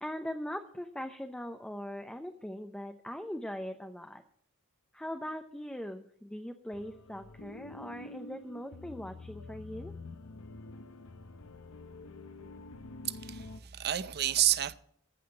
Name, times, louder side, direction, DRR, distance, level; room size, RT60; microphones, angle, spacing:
voice 1, 0.0-4.2 4.9-9.9, equal, 5° left, 0.6 m, -40 dB
sound 1, 6.7-13.6, left 2 dB, 65° left, 0.9 m, -47 dB
voice 2, 13.0-14.8, right 12 dB, 45° right, 0.6 m, -30 dB
14.5 x 5.7 x 8.6 m
head